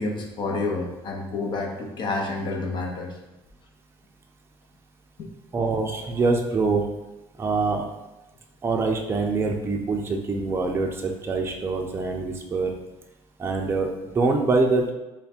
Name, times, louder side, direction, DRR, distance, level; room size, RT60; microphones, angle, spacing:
voice 1, 0.0-3.1 5.2-5.3, left 3 dB, 50° left, 2 dB, 0.7 m, -29 dB
voice 2, 5.5-6.9 7.4-7.9 8.6-12.7 13.4-14.9, right 3 dB, 25° right, 1 dB, 0.5 m, -24 dB
3.3 x 2.2 x 4.2 m, 1.0 s
cardioid pair, 110°, 10 cm